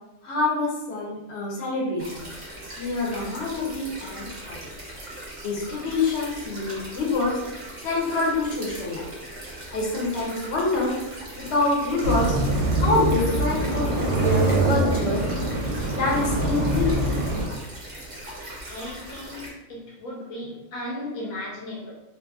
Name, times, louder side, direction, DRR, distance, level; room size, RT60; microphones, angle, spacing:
voice 1, 0.2-2.2 2.8-4.6 5.4-7.4 7.8-9.1 9.7-10.9 11.4-12.4 12.8-15.2 15.9-16.9, left 2 dB, 60° left, -3 dB, 0.9 m, -26 dB
sound 1, 2.0-19.5, right 1 dB, 40° right, 0.4 m, -40 dB
sound 2, 12.0-17.5, right 2 dB, 65° right, 0.8 m, -24 dB
voice 2, 18.7-21.9, left 1 dB, 80° left, -3 dB, 1.1 m, -36 dB
2.7 x 2.5 x 2.3 m, 0.97 s
omnidirectional pair, 1.4 m